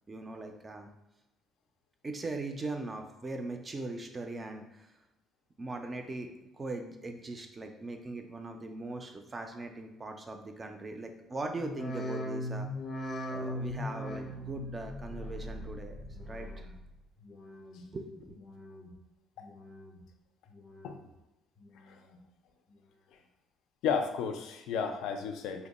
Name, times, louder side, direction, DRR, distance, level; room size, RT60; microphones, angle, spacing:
voice 1, 0.1-0.9 2.0-5.0 5.6-6.3 6.5-12.7 13.3-16.7 17.9-18.4, right 2 dB, 20° right, 5 dB, 0.3 m, -40 dB
sound 1, 11.5-16.9 17.2-17.8 18.3-19.0 19.4-20.0 20.5-21.1 21.6-22.2 22.7-22.8, left 1 dB, 25° left, 0.5 m, -40 dB
voice 2, 23.8-25.7, left 6 dB, 80° left, 6 dB, 0.4 m, -33 dB
2.9 x 2.1 x 3.9 m, 0.97 s
cardioid pair, 160°, 0 cm